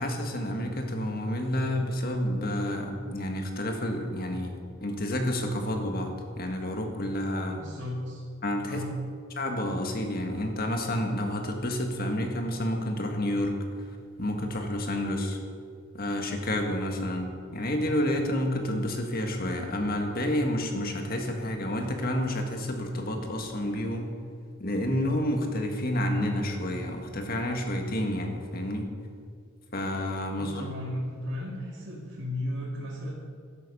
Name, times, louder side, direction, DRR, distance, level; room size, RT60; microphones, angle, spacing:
voice 1, 0.0-4.5 4.8-6.1 6.4-7.6 8.4-8.8 9.4-13.6 14.2-15.4 15.9-24.1 24.6-28.9 29.7-30.7, left 1 dB, 45° left, 3 dB, 1.8 m, -29 dB
voice 2, 7.6-8.2 8.6-9.0 30.4-33.1, left 1 dB, 60° right, -8 dB, 2.9 m, -35 dB
13.5 x 12.0 x 5.5 m, 2.2 s
head